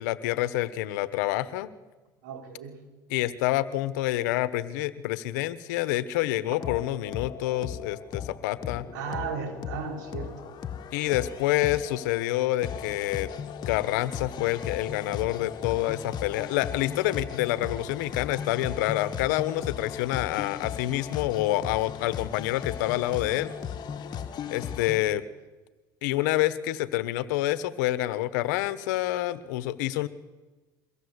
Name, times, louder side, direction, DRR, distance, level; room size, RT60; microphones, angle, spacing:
voice 1, 0.0-1.7 3.1-8.8 10.9-13.3 13.7-23.5 24.5-25.2 26.0-30.1, left 15 dB, 85° left, 15 dB, 1.2 m, -27 dB
voice 2, 2.2-2.8 6.5-6.6 8.9-10.5 24.4-24.5, right 6 dB, 90° right, 4 dB, 4.1 m, -36 dB
sound 1, 6.5-25.0, left 8 dB, 45° left, 1.7 m, -37 dB
23.5 x 16.5 x 8.1 m, 1.2 s
supercardioid pair, 90°, 10 cm